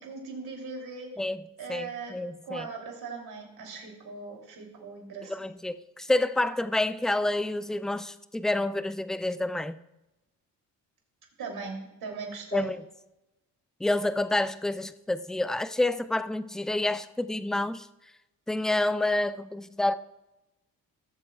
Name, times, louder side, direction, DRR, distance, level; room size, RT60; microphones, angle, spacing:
voice 1, 0.0-1.1 1.6-2.1 2.4-5.3 11.4-12.7, right 4 dB, 65° right, 3.1 m, -39 dB
voice 2, 1.7-2.7 5.3-9.7 12.5-12.8 13.8-17.9 18.5-19.9, left 2 dB, ahead, 0.4 m, -28 dB
18.0 x 7.4 x 2.4 m
supercardioid pair, 65°, 40 cm